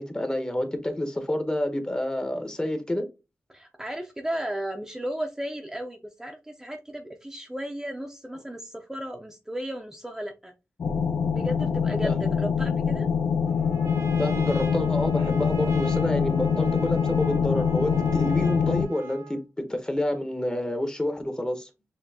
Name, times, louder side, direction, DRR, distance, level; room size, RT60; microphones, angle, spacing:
voice 1, 0.0-3.0 12.0-12.3 14.2-19.4 19.7-21.7, left 1 dB, 15° left, 1.0 m, -28 dB
voice 2, 3.5-10.5 11.3-13.1, right 1 dB, 10° right, 0.6 m, -34 dB
sound 1, 10.8-18.8, left 6 dB, 80° left, 0.7 m, -24 dB
Trumpet, 13.5-19.5, right 5 dB, 85° right, 1.0 m, -42 dB
6.7 x 2.8 x 2.8 m
wide cardioid pair, 115°, 5 cm